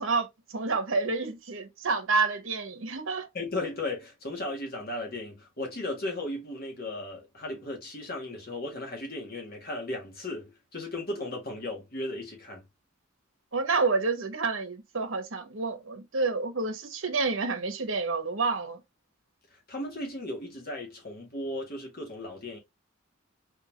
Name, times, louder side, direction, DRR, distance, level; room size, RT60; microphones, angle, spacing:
voice 1, 0.0-3.3 13.5-18.8, right 4 dB, 65° right, 1.1 m, -29 dB
voice 2, 3.3-12.6 19.5-22.6, left 2 dB, 50° left, 1.9 m, -36 dB
4.6 x 3.6 x 2.9 m
head